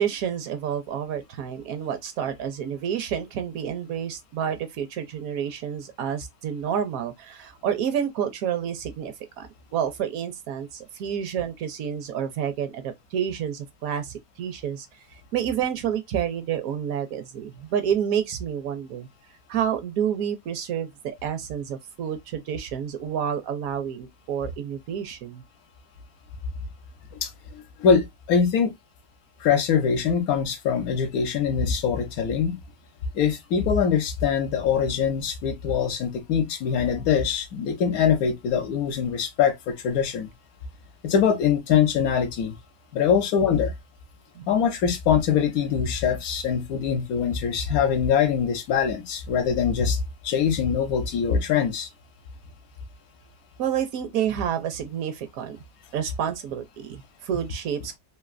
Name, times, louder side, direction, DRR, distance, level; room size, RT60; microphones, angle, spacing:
voice 1, 0.0-14.9 15.3-19.1 19.5-25.4 44.3-44.5 53.6-55.6 55.9-58.0, right 8 dB, 70° right, 0.9 m, -29 dB
voice 2, 27.2-28.7 29.4-32.6 33.1-40.3 41.0-42.6 42.9-43.7 44.5-50.0 50.2-51.9, left 7 dB, 75° left, 1.1 m, -23 dB
3.1 x 2.6 x 2.3 m
omnidirectional pair, 1.6 m